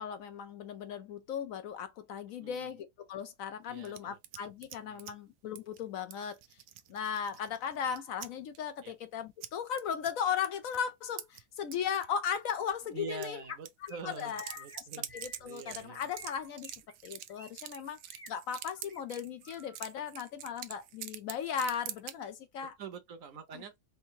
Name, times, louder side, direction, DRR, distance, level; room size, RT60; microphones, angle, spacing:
voice 1, 0.0-6.4 6.9-13.4 13.8-14.8 15.1-16.7 17.0-18.0 18.3-22.7 23.5-23.6, left 7 dB, 70° left, 0.9 m, -37 dB
voice 2, 2.4-2.8 3.7-4.2 4.8-5.1 8.8-8.9 12.9-16.1 22.6-23.8, right 5 dB, 65° right, 1.1 m, -46 dB
sound 1, 3.8-5.1 5.6-5.8 6.1-8.3 8.5-8.6 9.4-9.5 9.8-10.1 10.4-10.8 11.2-12.1 12.3-12.6 13.2-13.3 13.6-22.1, right 12 dB, 90° right, 1.1 m, -46 dB
Chirp tweet, 12.7-12.8 13.1-13.6 13.9-14.1 14.4-14.8 15.1-15.8 16.1-17.5 17.7-18.3 18.7-19.0 19.4-19.8, equal, 10° left, 0.7 m, -52 dB
4.5 x 2.6 x 2.8 m
omnidirectional pair, 1.7 m